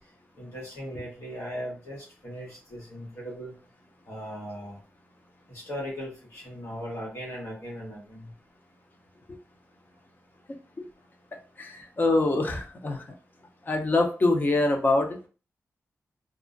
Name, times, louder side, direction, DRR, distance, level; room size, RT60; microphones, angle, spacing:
voice 1, 0.4-3.5 4.1-4.8 5.5-8.3, equal, 80° left, -3 dB, 1.2 m, -38 dB
voice 2, 11.6-13.0 13.7-15.2, left 2 dB, 35° left, 4 dB, 0.6 m, -24 dB
2.4 x 2.1 x 2.4 m, 0.37 s
cardioid pair, 75°, 5 cm